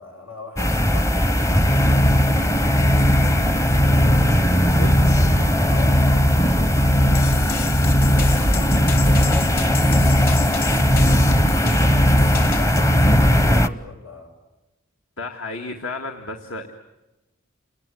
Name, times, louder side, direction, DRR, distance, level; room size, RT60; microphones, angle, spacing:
voice 1, 0.0-3.9 4.5-7.9 8.2-11.1 12.0-14.3, left 2 dB, 90° left, 3 dB, 7.7 m, -41 dB
sound 1, 0.6-13.7, equal, 15° left, 0.9 m, -20 dB
sound 2, 1.5-13.6, equal, 35° left, 1.1 m, -20 dB
sound 3, 7.1-12.7, left 3 dB, 50° left, 3.3 m, -29 dB
voice 2, 15.2-16.7, left 2 dB, 70° left, 4 dB, 2.0 m, -32 dB
29.0 x 19.0 x 9.4 m, 1.0 s
head